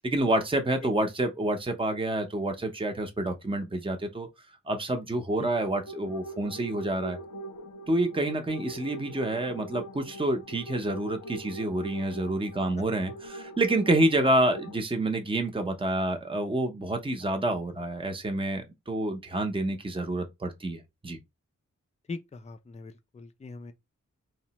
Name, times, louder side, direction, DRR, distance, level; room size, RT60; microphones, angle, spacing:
voice 1, 0.0-4.3 4.7-7.2 7.9-21.2, right 1 dB, 15° right, 0.6 m, -28 dB
sound 1, 5.5-14.8, right 1 dB, 75° left, 0.6 m, -42 dB
voice 2, 22.1-23.7, left 3 dB, 20° left, 0.4 m, -41 dB
3.2 x 2.1 x 2.8 m
wide cardioid pair, 50°, 32 cm